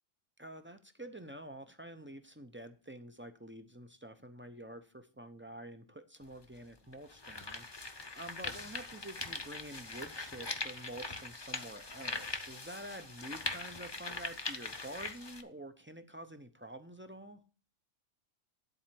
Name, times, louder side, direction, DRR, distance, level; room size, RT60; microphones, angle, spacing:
voice 1, 0.4-17.4, right 1 dB, 20° right, 8 dB, 0.3 m, -48 dB
sound 1, 6.2-6.3 6.9-15.4, left 3 dB, 25° left, 0.7 m, -41 dB
10.5 x 4.3 x 7.4 m, 0.38 s
omnidirectional pair, 1.3 m